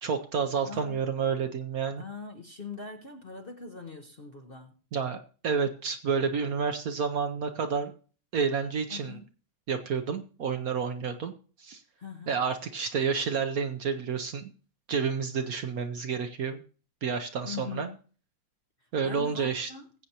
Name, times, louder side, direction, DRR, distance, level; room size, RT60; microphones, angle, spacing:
voice 1, 0.0-2.0 4.9-7.9 8.3-9.2 9.7-11.3 11.6-11.8 12.3-14.5 14.9-16.6 17.0-17.9 18.9-19.7, right 6 dB, 60° right, 1.1 m, -30 dB
voice 2, 0.6-1.0 2.0-4.8 8.9-9.2 12.0-12.4 17.4-18.0 19.0-19.9, left 4 dB, 40° left, 0.9 m, -41 dB
21.0 x 8.0 x 2.9 m
omnidirectional pair, 2.0 m